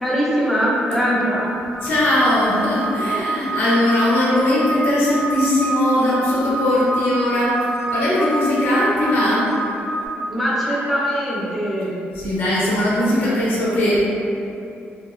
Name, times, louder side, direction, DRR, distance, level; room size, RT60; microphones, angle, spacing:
voice 1, 0.0-1.5 10.3-11.9, equal, ahead, -7 dB, 0.5 m, -21 dB
voice 2, 1.8-9.6 12.1-14.1, left 1 dB, 65° left, -7 dB, 0.6 m, -19 dB
sound 1, 1.8-10.1, right 2 dB, 80° right, 0.8 m, -27 dB
2.7 x 2.2 x 2.4 m, 2.6 s
cardioid pair, 155°, 4 cm